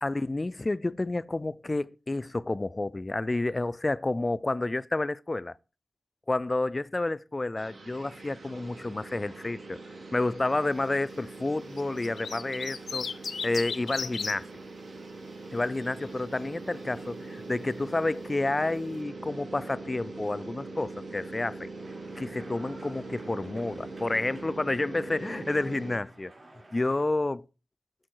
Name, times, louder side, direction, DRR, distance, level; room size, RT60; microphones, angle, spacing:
voice 1, 0.0-5.5 6.3-9.8 10.1-13.1 13.4-14.5 15.5-21.7 22.2-26.3 26.7-27.4, left 2 dB, 30° left, 0.3 m, -30 dB
sound 1, 7.6-26.0, right 3 dB, 75° right, 1.8 m, -42 dB
sound 2, 11.8-14.4 15.6-16.1, left 5 dB, 90° left, 0.6 m, -35 dB
sound 3, 21.7-27.0, right 2 dB, 40° right, 5.2 m, -53 dB
12.5 x 4.6 x 4.5 m
wide cardioid pair, 75°, 0 cm